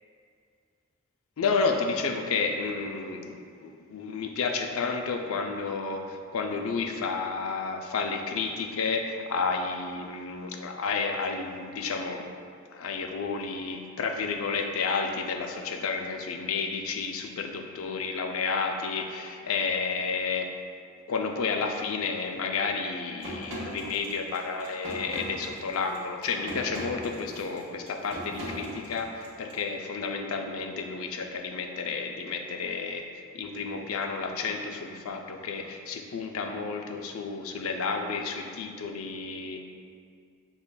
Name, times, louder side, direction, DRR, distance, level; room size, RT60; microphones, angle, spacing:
voice 1, 1.4-12.3 12.7-20.5 21.1-33.1 33.3-39.6, left 4 dB, 75° left, 3 dB, 0.4 m, -31 dB
sound 1, 23.2-29.6, equal, 80° right, 1.4 m, -39 dB
7.1 x 3.1 x 2.2 m, 2.2 s
head